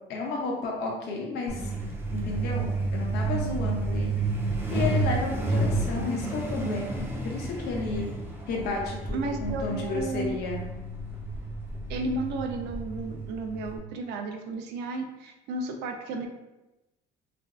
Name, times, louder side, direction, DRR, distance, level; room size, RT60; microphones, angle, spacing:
voice 1, 0.1-1.7 2.1-4.2 4.7-8.1 8.5-10.6, left 3 dB, 80° left, -1 dB, 0.6 m, -32 dB
Truck, 1.5-13.8, right 2 dB, 15° right, 0.5 m, -31 dB
voice 2, 9.1-10.3 11.9-16.3, right 2 dB, 90° right, 4 dB, 0.4 m, -33 dB
2.5 x 2.2 x 2.2 m, 0.98 s
cardioid pair, 110°, 17 cm